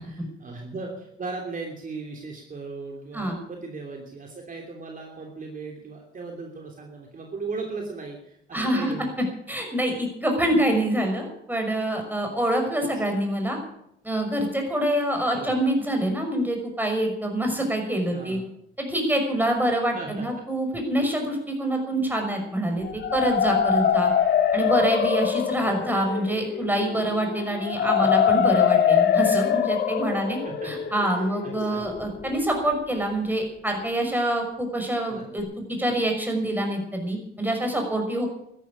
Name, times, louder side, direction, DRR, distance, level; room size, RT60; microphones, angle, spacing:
voice 1, 0.0-9.1 12.8-12.9 15.3-15.5 18.1-18.5 19.9-20.3 25.6-25.9 27.7-28.1 30.4-30.9 31.4-31.9 35.1-35.3, right 3 dB, 45° right, 1 dB, 3.1 m, -37 dB
voice 2, 8.5-8.9 9.5-13.6 14.0-18.4 18.8-22.9 23.1-24.1 24.5-30.4 30.6-35.4 35.7-38.3, right 1 dB, 10° right, 3 dB, 5.9 m, -26 dB
sound 1, 22.8-32.7, left 8 dB, 65° left, 1.7 m, -24 dB
13.0 x 11.5 x 8.5 m, 0.74 s
cardioid pair, 90°, 20 cm